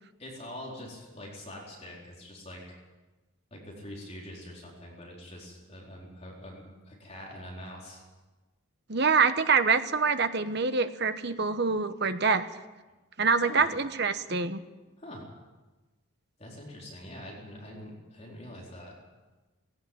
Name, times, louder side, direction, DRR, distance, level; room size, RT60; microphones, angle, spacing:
voice 1, 0.2-2.6 3.5-8.0 13.4-13.7 15.0-15.3 16.4-18.9, left 1 dB, 30° left, -3 dB, 4.5 m, -44 dB
voice 2, 8.9-12.5 13.2-14.6, right 5 dB, 50° right, 10 dB, 1.1 m, -25 dB
18.5 x 17.0 x 8.9 m, 1.2 s
head